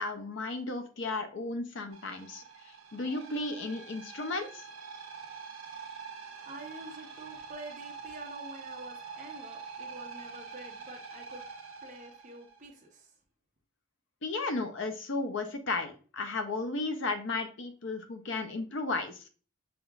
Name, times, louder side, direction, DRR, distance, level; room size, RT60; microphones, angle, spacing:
voice 1, 0.0-2.4 2.9-4.6 14.2-19.2, left 3 dB, 60° left, 7 dB, 0.6 m, -34 dB
sound 1, 1.9-12.7, right 5 dB, 75° right, 0.6 m, -45 dB
voice 2, 6.5-11.4 11.8-13.1, right 2 dB, 35° right, 2 dB, 0.8 m, -47 dB
5.1 x 2.9 x 2.3 m, 0.38 s
head